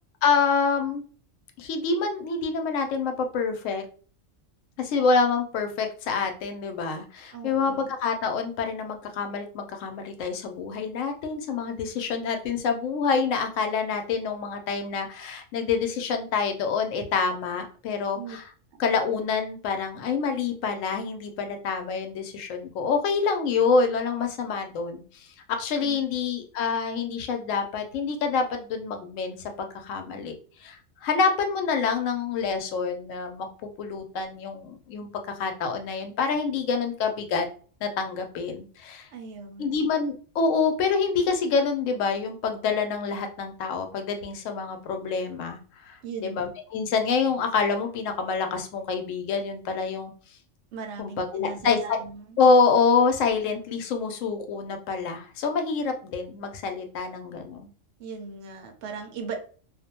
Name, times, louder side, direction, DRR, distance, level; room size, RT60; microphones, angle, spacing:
voice 1, 0.2-1.0 1.6-3.8 4.8-7.7 8.0-18.4 18.8-25.0 25.5-33.5 33.8-37.5 37.8-39.1 39.6-50.1 51.0-52.0 52.4-57.7, left 5 dB, 75° left, 5 dB, 0.9 m, -26 dB
voice 2, 7.3-7.9 18.1-18.4 25.8-26.2 39.1-39.9 46.0-46.5 50.7-52.4 58.0-59.4, right 5 dB, 65° right, 5 dB, 0.8 m, -38 dB
2.4 x 2.1 x 2.8 m, 0.41 s
omnidirectional pair, 1.3 m